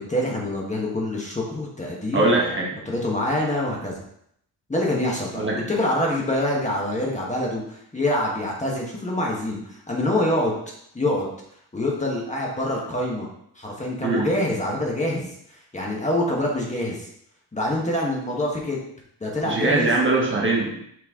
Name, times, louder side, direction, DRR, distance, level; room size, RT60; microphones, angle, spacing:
voice 1, 0.0-2.5 2.9-4.0 4.7-10.5 10.9-11.3 11.7-13.3 13.5-17.1 17.5-18.8 19.2-20.0, left 1 dB, 20° left, -3 dB, 1.3 m, -25 dB
voice 2, 2.1-2.7 5.4-5.6 14.0-14.3 19.4-20.8, right 2 dB, 30° right, -2 dB, 1.1 m, -21 dB
6.1 x 4.3 x 3.7 m, 0.71 s
wide cardioid pair, 150°, 40 cm